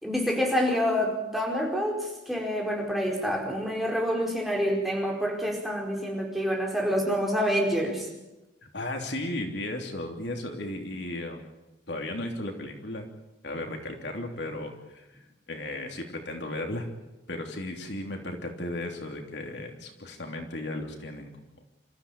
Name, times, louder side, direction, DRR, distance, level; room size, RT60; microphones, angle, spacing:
voice 1, 0.0-8.1, equal, ahead, -1 dB, 4.8 m, -27 dB
voice 2, 8.7-11.4 11.9-13.1 13.4-15.2 15.5-16.9 17.3-21.3, left 1 dB, 70° left, 3 dB, 3.1 m, -35 dB
27.5 x 14.5 x 8.8 m, 1.0 s
head